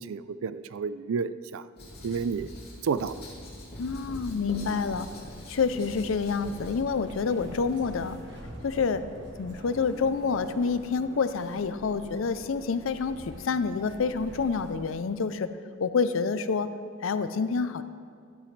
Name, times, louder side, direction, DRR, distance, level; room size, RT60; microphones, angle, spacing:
voice 1, 0.0-1.7 2.0-2.5 2.8-3.2, right 5 dB, 85° right, 15 dB, 0.4 m, -31 dB
Writing, 1.8-6.8, left 1 dB, 50° left, 2.8 m, -43 dB
voice 2, 3.8-5.1 5.5-8.2 8.6-9.0 9.4-15.5 15.8-16.7 17.0-17.8, left 5 dB, 75° left, 12 dB, 0.5 m, -28 dB
sound 1, 3.8-14.8, equal, 60° right, 1.3 m, -46 dB
Guitar, 9.7-14.3, right 1 dB, 40° right, 1.8 m, -50 dB
12.0 x 11.0 x 3.2 m, 2.2 s
head